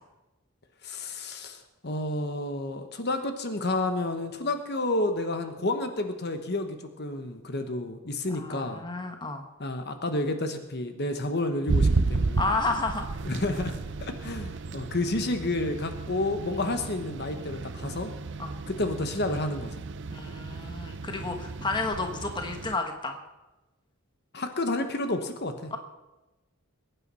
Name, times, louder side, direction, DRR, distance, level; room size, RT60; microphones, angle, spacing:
voice 1, 0.8-8.8 9.6-12.5 13.2-18.1 18.7-19.7 21.2-21.4 24.3-25.7, left 2 dB, 50° left, 7 dB, 1.2 m, -30 dB
voice 2, 8.3-9.4 12.4-13.2 18.4-18.6 20.1-23.2 25.7-25.8, left 3 dB, 20° left, 4 dB, 1.2 m, -31 dB
sound 1, 11.7-22.8, right 3 dB, 55° right, 0.6 m, -32 dB
22.0 x 9.2 x 5.6 m, 1.1 s
head